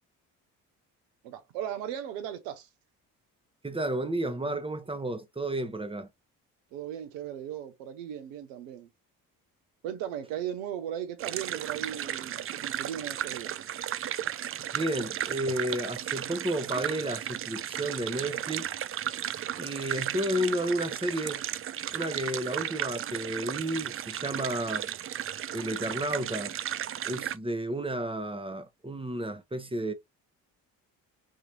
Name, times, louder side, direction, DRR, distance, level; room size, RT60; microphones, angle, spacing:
voice 1, 1.2-2.7 6.7-8.9 9.8-13.6, right 10 dB, 85° right, 1.0 m, -37 dB
voice 2, 3.6-6.1 14.7-18.7 19.6-21.4 21.9-24.9 25.5-26.6 27.0-29.9, right 1 dB, 10° right, 0.9 m, -32 dB
sound 1, 11.2-27.4, right 11 dB, 35° right, 0.4 m, -35 dB
4.6 x 3.1 x 2.8 m
hypercardioid pair, 55°, 43 cm